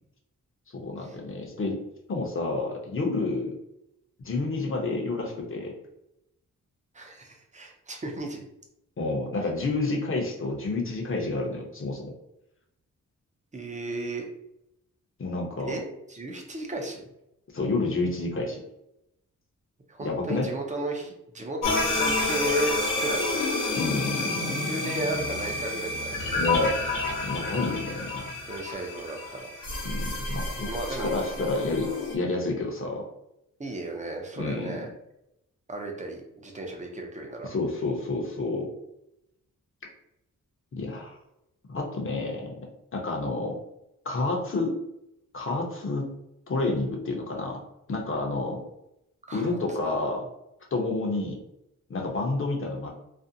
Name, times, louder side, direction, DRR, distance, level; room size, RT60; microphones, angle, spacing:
voice 1, 0.7-1.8 2.1-3.6 4.2-5.7 9.0-12.1 15.2-15.8 17.5-18.6 20.0-20.5 23.8-24.6 26.4-26.8 27.2-28.3 29.8-33.1 34.4-34.8 37.4-38.7 40.7-41.1 41.7-42.5 42.9-43.5 44.1-44.7 45.3-46.1 46.5-47.6 47.9-48.6 49.3-50.3 50.7-51.4 51.9-52.9, left 2 dB, 40° left, 0 dB, 0.6 m, -29 dB
voice 2, 6.9-8.5 13.5-14.3 15.6-17.1 19.9-23.4 24.7-26.2 28.5-29.5 30.6-31.1 33.6-34.9 35.7-37.5 49.3-49.6 49.8-49.9, right 1 dB, 25° right, 1 dB, 0.5 m, -34 dB
sound 1, 21.6-32.2, left 2 dB, 75° left, 0.7 m, -29 dB
2.5 x 2.0 x 2.6 m, 0.84 s
wide cardioid pair, 100°, 33 cm